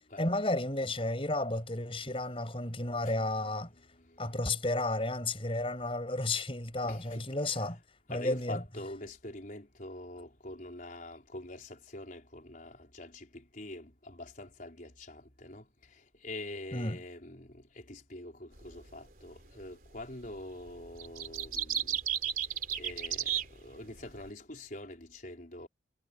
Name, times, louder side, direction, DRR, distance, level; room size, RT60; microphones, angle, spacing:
voice 1, 0.2-3.7 4.2-7.8 8.1-8.6 16.7-17.0, left 2 dB, 30° left, 7.6 m, -32 dB
voice 2, 2.8-3.3 6.8-7.3 8.1-15.6 16.2-22.0 22.8-25.7, left 1 dB, 45° left, 4.9 m, -45 dB
sound 1, 18.6-18.8 20.0-20.3 20.7-24.3, right 9 dB, 45° right, 3.4 m, -34 dB
head